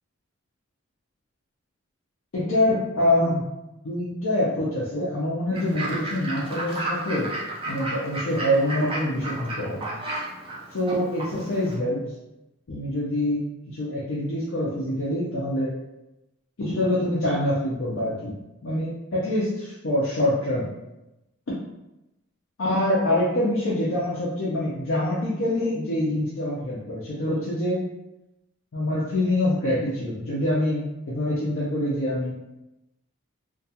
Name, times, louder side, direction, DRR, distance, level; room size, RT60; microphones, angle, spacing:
voice 1, 2.3-3.4 3.8-7.3 7.7-9.9 10.7-12.0 12.7-13.4 13.7-15.7 16.6-18.3 18.6-20.7 22.6-27.8 28.7-32.3, left 1 dB, 60° left, -7 dB, 0.5 m, -25 dB
Fowl / Bird, 5.5-11.7, right 1 dB, 25° right, 0.4 m, -33 dB
2.2 x 2.2 x 2.8 m, 0.95 s
head